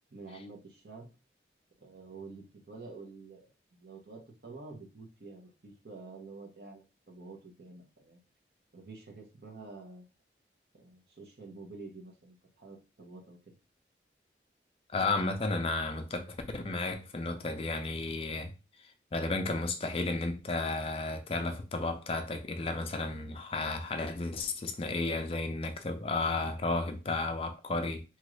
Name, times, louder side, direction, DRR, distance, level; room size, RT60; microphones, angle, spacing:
voice 1, 0.1-1.1 1.8-8.2 8.7-10.1 10.7-13.5, right 3 dB, 65° right, 0.8 m, -49 dB
voice 2, 14.9-18.5 19.1-28.0, left 3 dB, 30° left, 0.4 m, -33 dB
3.0 x 2.4 x 3.1 m
head